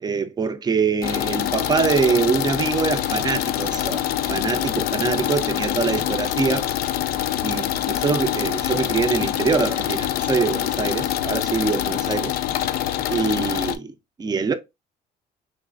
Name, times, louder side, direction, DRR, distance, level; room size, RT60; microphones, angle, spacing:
voice 1, 0.0-6.7 7.4-12.4 13.1-14.5, right 5 dB, 25° right, 0.5 m, -24 dB
sound 1, 1.0-13.8, left 12 dB, 65° left, 0.4 m, -25 dB
3.2 x 3.1 x 2.4 m
cardioid pair, 110°, 17 cm